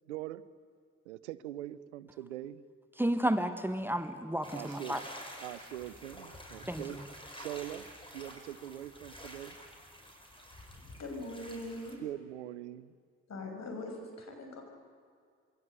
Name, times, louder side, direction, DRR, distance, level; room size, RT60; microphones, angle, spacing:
voice 1, 0.1-0.4 1.1-2.6 4.5-5.0 5.4-7.0 7.3-7.9 8.1-9.6 12.0-12.9, right 13 dB, 85° right, 16 dB, 0.7 m, -42 dB
voice 2, 3.0-5.0 6.7-6.8, right 1 dB, 5° right, 8 dB, 1.6 m, -31 dB
sound 1, 4.4-12.0, equal, 15° left, 6.1 m, -49 dB
voice 3, 10.8-12.0 13.3-14.6, left 2 dB, 50° left, 3 dB, 6.5 m, -42 dB
27.0 x 22.5 x 8.0 m, 2.1 s
figure-of-eight pair, 40°, 34 cm